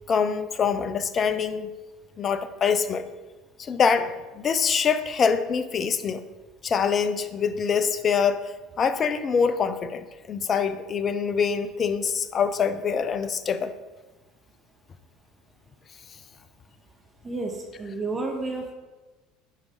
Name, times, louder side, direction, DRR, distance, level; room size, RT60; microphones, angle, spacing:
voice 1, 0.1-1.7 2.2-3.1 3.6-6.2 6.6-13.7, left 6 dB, 40° left, 12 dB, 0.7 m, -25 dB
voice 2, 17.2-18.7, right 3 dB, 25° right, 2 dB, 1.7 m, -31 dB
9.5 x 5.3 x 4.9 m, 1.2 s
hypercardioid pair, 70°, 0 cm